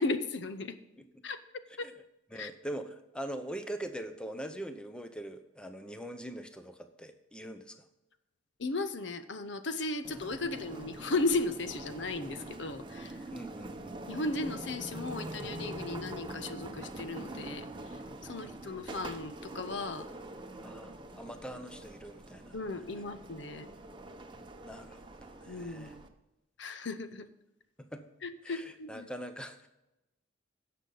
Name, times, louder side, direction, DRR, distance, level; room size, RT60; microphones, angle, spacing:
voice 1, 0.0-0.8 1.2-1.4 1.8-1.9 2.3-2.5 8.6-13.2 14.1-17.7 18.2-20.1 22.5-23.7 25.5-26.1 26.6-27.3 28.2-29.1, left 3 dB, 60° left, 11 dB, 0.7 m, -35 dB
voice 2, 2.3-7.9 13.3-14.0 18.3-18.6 20.6-22.6 24.6-26.0 27.8-28.1 28.4-29.7, right 1 dB, 5° left, 7 dB, 0.7 m, -43 dB
sound 1, 10.0-26.1, right 1 dB, 25° right, 0.8 m, -44 dB
16.5 x 6.7 x 3.9 m, 0.94 s
head